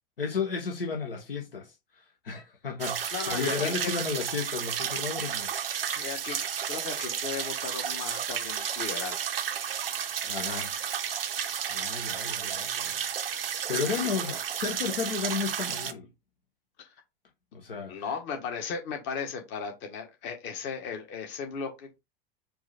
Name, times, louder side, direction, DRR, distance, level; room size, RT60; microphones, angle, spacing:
voice 1, 0.2-1.7 2.2-5.5 10.2-10.7 11.7-13.0 13.3-16.1 17.5-18.1, left 5 dB, 75° left, 1.0 m, -33 dB
sound 1, 2.8-15.9, right 8 dB, 75° right, 0.5 m, -32 dB
voice 2, 3.1-3.9 5.9-6.4 6.7-9.2 13.8-14.4 16.8-16.9 17.9-22.0, left 6 dB, 40° left, 1.5 m, -36 dB
4.7 x 2.7 x 4.2 m
figure-of-eight pair, 85°, 29 cm